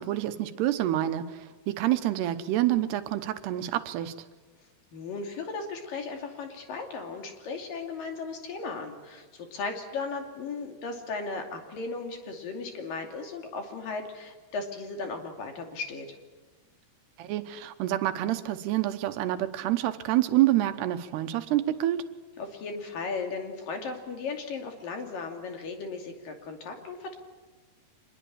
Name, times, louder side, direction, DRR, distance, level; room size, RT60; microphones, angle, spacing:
voice 1, 0.0-4.1 17.2-22.1, right 14 dB, 85° right, 10 dB, 3.1 m, -27 dB
voice 2, 4.9-16.2 22.4-27.1, left 4 dB, 60° left, 3 dB, 4.1 m, -36 dB
25.5 x 21.5 x 8.7 m, 1.3 s
omnidirectional pair, 4.7 m